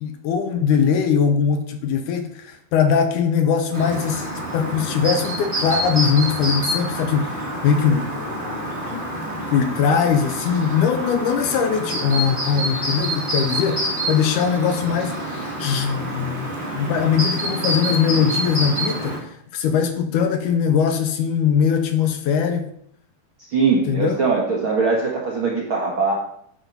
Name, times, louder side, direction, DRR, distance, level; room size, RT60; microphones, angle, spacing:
voice 1, 0.0-9.1 9.5-22.7 23.9-24.2, left 7 dB, 75° left, 7 dB, 2.0 m, -21 dB
Chirp tweet, 3.7-19.2, right 1 dB, 35° right, 0.8 m, -27 dB
voice 2, 23.5-26.1, right 4 dB, 60° right, -3 dB, 1.3 m, -21 dB
10.0 x 4.3 x 5.3 m, 0.68 s
omnidirectional pair, 3.9 m